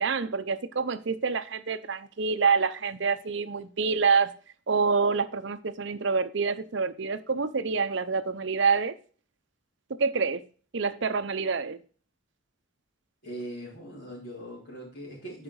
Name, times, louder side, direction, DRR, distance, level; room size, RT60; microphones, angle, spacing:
voice 1, 0.0-4.3 4.7-8.9 10.0-10.4 10.7-11.8, right 5 dB, 60° right, 0.6 m, -27 dB
voice 2, 13.2-15.4, right 1 dB, 50° left, 3.5 m, -40 dB
9.9 x 5.0 x 4.7 m
head